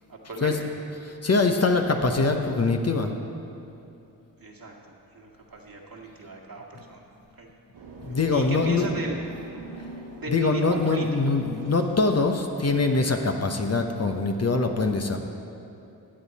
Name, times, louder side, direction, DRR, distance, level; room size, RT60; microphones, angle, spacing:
voice 1, 0.1-0.7 4.4-7.1 7.4-7.5 8.1-9.2 10.1-11.3, right 3 dB, 55° right, -1 dB, 1.9 m, -36 dB
voice 2, 1.0-3.1 8.0-8.9 10.3-15.2, left 3 dB, 35° left, 4 dB, 1.0 m, -23 dB
sound 1, 7.7-14.2, right 2 dB, 75° right, 1.8 m, -45 dB
15.5 x 8.3 x 4.2 m, 2.7 s
supercardioid pair, 50°, 42 cm